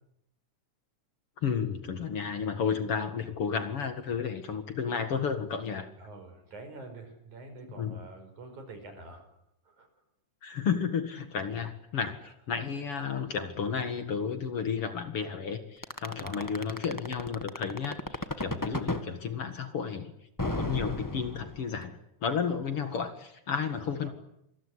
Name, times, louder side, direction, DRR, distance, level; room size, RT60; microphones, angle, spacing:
voice 1, 1.4-5.9 7.6-8.0 10.4-20.1 20.4-24.1, left 6 dB, 50° left, 8 dB, 2.5 m, -32 dB
voice 2, 6.0-9.3 9.8-9.9 16.2-16.5, right 2 dB, 70° right, 7 dB, 6.9 m, -46 dB
sound 1, 15.8-19.0 20.4-21.8, left 1 dB, 30° left, 0.3 m, -33 dB
26.5 x 22.0 x 9.9 m, 0.80 s
omnidirectional pair, 3.5 m